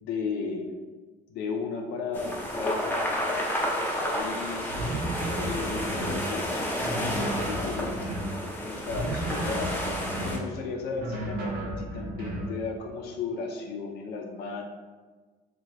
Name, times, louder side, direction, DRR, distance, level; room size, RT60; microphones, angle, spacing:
voice 1, 0.0-0.7 1.3-3.5 3.8-4.7 5.4-8.1 8.4-9.8 10.2-14.6, left 4 dB, 75° left, 2 dB, 0.4 m, -35 dB
sound 1, 2.1-10.4, equal, 10° left, 0.5 m, -31 dB
sound 2, 4.7-6.3 6.8-8.4 8.9-10.5 11.0-12.6, right 1 dB, 65° right, 0.6 m, -33 dB
2.7 x 2.2 x 3.0 m, 1.4 s
cardioid pair, 110°, 17 cm